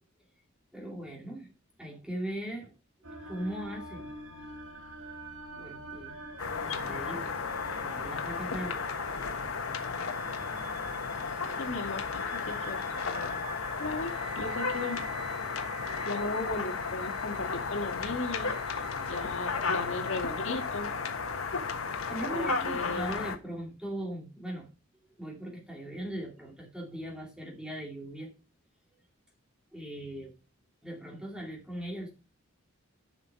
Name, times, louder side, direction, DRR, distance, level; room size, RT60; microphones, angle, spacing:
voice 1, 0.7-1.5 1.8-2.7 3.3-4.1 5.6-6.2 6.5-7.3 7.8-8.9 22.1-24.7 25.2-28.3 29.7-30.3 30.8-32.1, right 1 dB, 5° right, 2.4 m, -39 dB
sound 1, 3.0-20.7, right 2 dB, 80° right, 2.1 m, -46 dB
sound 2, 6.4-23.4, left 5 dB, 80° left, 1.2 m, -34 dB
voice 2, 11.6-12.8 13.8-15.1 16.1-18.5 19.1-20.9 22.3-23.1, left 2 dB, 65° left, 1.8 m, -36 dB
11.0 x 5.7 x 4.8 m
head